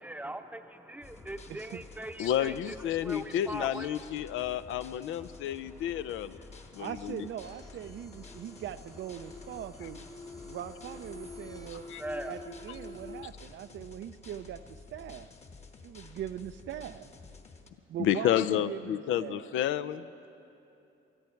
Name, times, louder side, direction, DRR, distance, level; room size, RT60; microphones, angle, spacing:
voice 1, 0.0-2.8 3.0-4.0 6.5-6.8 8.3-8.4 10.2-10.6 11.3-12.3, right 1 dB, 10° right, 8 dB, 0.7 m, -42 dB
sound 1, 1.0-17.7, left 4 dB, 35° left, 1.2 m, -51 dB
voice 2, 1.5-1.8 6.8-10.1 10.4-11.9 12.3-15.3 15.8-17.1 17.9-19.5, right 10 dB, 70° right, 12 dB, 0.5 m, -41 dB
voice 3, 2.2-6.5 6.7-7.3 11.9-12.0 18.0-20.1, left 11 dB, 85° left, 14 dB, 0.5 m, -30 dB
sound 2, 7.4-13.3, left 2 dB, 15° left, 0.9 m, -48 dB
20.0 x 13.5 x 4.5 m, 2.9 s
cardioid pair, 90°, 20 cm